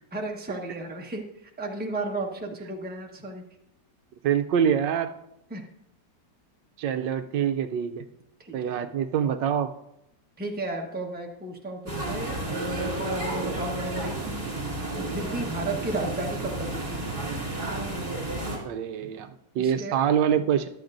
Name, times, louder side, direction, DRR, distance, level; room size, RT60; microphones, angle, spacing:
voice 1, 0.1-3.4 5.5-5.6 8.4-8.7 10.4-14.5 14.9-17.0 19.6-20.0, right 2 dB, 5° right, 0 dB, 0.9 m, -34 dB
voice 2, 4.2-5.1 6.8-8.0 8.5-9.7 18.6-20.7, right 8 dB, 80° right, 8 dB, 1.3 m, -25 dB
sound 1, 11.9-18.6, right 2 dB, 30° right, 2.8 m, -31 dB
14.5 x 11.5 x 2.6 m, 0.79 s
omnidirectional pair, 2.0 m